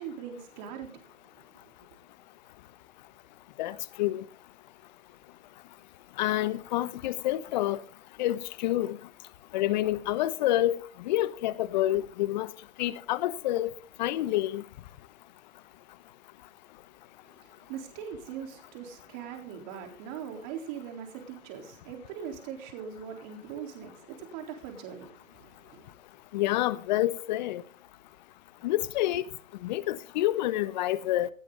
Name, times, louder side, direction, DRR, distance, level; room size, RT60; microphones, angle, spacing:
voice 1, 0.0-1.4 17.2-25.9, right 8 dB, 35° right, 3.9 m, -41 dB
voice 2, 3.6-4.2 6.2-7.8 8.2-9.0 9.5-12.5 12.8-13.7 14.0-14.6 26.3-27.6 28.6-29.2 29.6-31.3, left 14 dB, 35° left, 1.0 m, -28 dB
18.5 x 15.0 x 3.9 m
hypercardioid pair, 135°, 39 cm